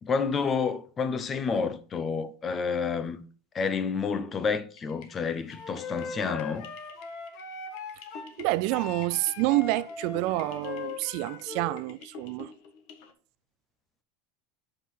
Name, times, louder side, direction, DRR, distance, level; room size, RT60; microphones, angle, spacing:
voice 1, 0.0-3.2 3.5-6.7, left 5 dB, 20° left, 0.6 m, -29 dB
sound 1, 4.8-13.1, left 5 dB, 60° left, 1.4 m, -50 dB
Wind instrument woodwind instrument, 5.5-8.3 8.7-11.8, left 5 dB, 45° left, 1.5 m, -39 dB
voice 2, 8.4-12.5, right 19 dB, 50° right, 0.3 m, -28 dB
6.3 x 5.5 x 5.7 m
supercardioid pair, 165°, 0 cm